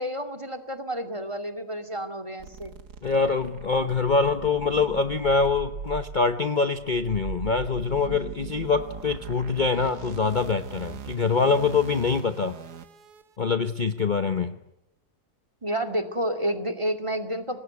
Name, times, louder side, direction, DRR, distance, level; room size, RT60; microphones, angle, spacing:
voice 1, 0.0-2.7 15.6-17.6, right 1 dB, 20° right, 7 dB, 2.4 m, -30 dB
sound 1, 2.4-13.2, right 6 dB, 90° right, 1.8 m, -40 dB
voice 2, 3.0-12.6 13.4-14.6, left 4 dB, 35° left, 9 dB, 1.0 m, -24 dB
26.5 x 19.5 x 9.5 m, 0.90 s
omnidirectional pair, 1.7 m